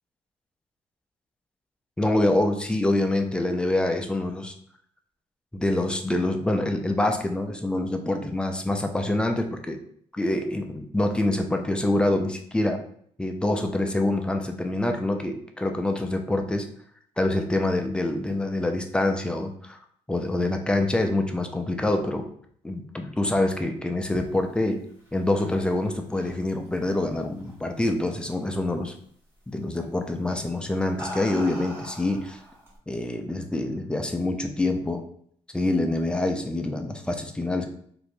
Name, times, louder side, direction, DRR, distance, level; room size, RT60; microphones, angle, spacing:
voice 1, 2.0-4.5 5.5-9.8 10.1-12.8 13.2-16.7 17.2-19.8 20.1-22.3 22.6-24.8 25.1-28.9 29.5-32.4 32.9-35.0 35.5-37.7, left 1 dB, 10° left, 5 dB, 0.3 m, -26 dB
sound 1, 24.9-27.8 28.1-28.6 29.8-30.0 30.6-32.8, equal, 20° right, 1.4 m, -41 dB
2.7 x 2.5 x 3.2 m, 0.63 s
cardioid pair, 130°, 11 cm